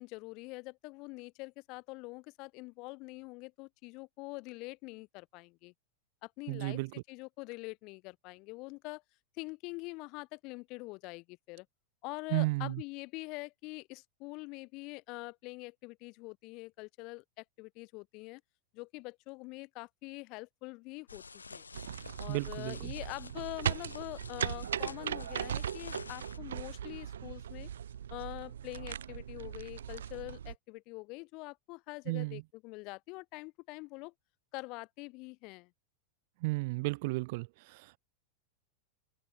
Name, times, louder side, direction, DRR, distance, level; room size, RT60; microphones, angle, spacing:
voice 1, 0.0-5.7 6.2-9.0 9.4-11.7 12.0-18.4 18.7-21.6 22.2-27.7 28.1-34.1 34.5-35.7, left 25 dB, 40° left, 1.3 m, -45 dB
voice 2, 6.5-6.9 12.3-12.8 22.3-22.9 32.1-32.4 36.4-38.0, right 24 dB, 50° right, 0.6 m, -33 dB
sound 1, 21.1-26.4, left 4 dB, 75° left, 1.3 m, -50 dB
sound 2, 21.7-30.6, right 9 dB, 65° right, 1.1 m, -39 dB
figure-of-eight pair, 90°, 0 cm